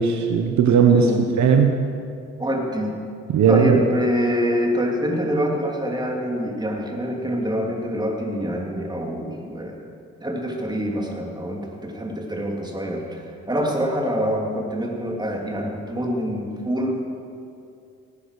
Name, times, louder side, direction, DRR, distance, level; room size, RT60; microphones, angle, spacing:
voice 1, 0.0-1.1 1.4-1.7 3.3-3.8, right 6 dB, 70° right, 3 dB, 1.2 m, -17 dB
voice 2, 0.9-1.3 2.4-3.0 3.5-9.9 10.2-17.0, equal, 15° right, 0 dB, 3.0 m, -25 dB
16.5 x 9.9 x 6.7 m, 2.5 s
cardioid pair, 90°, 30 cm